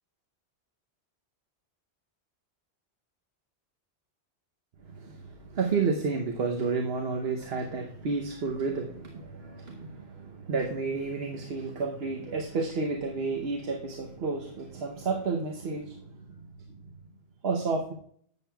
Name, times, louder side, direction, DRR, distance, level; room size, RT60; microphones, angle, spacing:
voice 1, 5.0-16.1 17.4-17.9, right 4 dB, 65° right, 3 dB, 1.1 m, -31 dB
10.5 x 8.4 x 2.3 m, 0.63 s
omnidirectional pair, 1.1 m